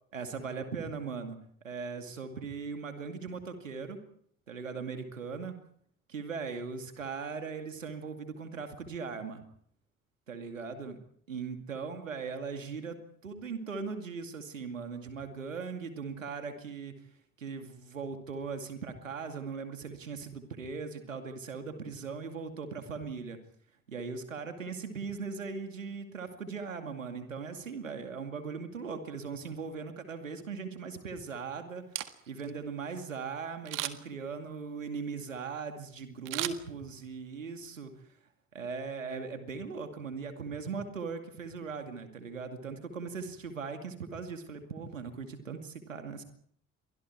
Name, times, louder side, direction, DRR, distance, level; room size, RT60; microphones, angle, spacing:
voice 1, 0.1-1.4 1.6-4.0 4.5-5.5 6.1-9.4 10.3-11.0 11.3-13.0 13.2-16.9 17.4-23.4 23.9-31.8 32.3-37.9 38.5-46.2, right 5 dB, 85° right, 7 dB, 2.4 m, -39 dB
Camera, 31.8-32.5 33.6-34.2 36.2-37.2 37.6-37.7, right 14 dB, 55° right, 1.8 m, -37 dB
30.0 x 24.0 x 4.7 m, 0.63 s
figure-of-eight pair, 50°, 38 cm